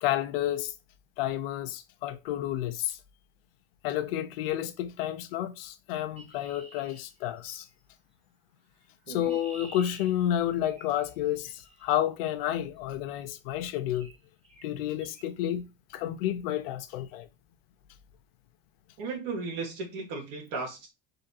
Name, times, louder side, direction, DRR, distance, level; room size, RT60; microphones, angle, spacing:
voice 1, 0.0-0.7 1.2-3.0 3.8-7.7 9.1-14.1 14.6-17.3, left 12 dB, 80° left, 0.8 m, -30 dB
Chirp tweet, 6.2-7.8 8.8-12.0 13.1-13.3 13.9-14.2 14.4-14.7 15.0-15.3, right 1 dB, 20° right, 2.1 m, -51 dB
voice 2, 19.0-20.9, right 4 dB, 75° right, 1.8 m, -35 dB
3.9 x 3.0 x 4.1 m
supercardioid pair, 105°, 29 cm